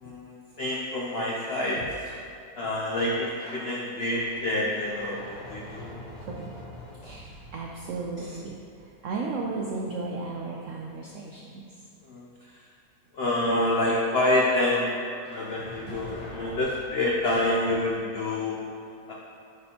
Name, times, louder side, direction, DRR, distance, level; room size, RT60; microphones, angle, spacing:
voice 1, 0.0-2.1 2.6-5.9 8.2-8.4 12.1-12.3 13.1-14.9 15.3-18.6 19.1-19.2, left 1 dB, 80° left, -3 dB, 0.5 m, -27 dB
sound 1, 3.0-9.7 15.2-17.5, left 1 dB, 65° left, 1.5 m, -45 dB
voice 2, 7.5-8.6 9.0-11.6 15.9-16.0, right 3 dB, 80° right, -1 dB, 0.7 m, -34 dB
9.7 x 4.2 x 2.8 m, 2.5 s
omnidirectional pair, 1.9 m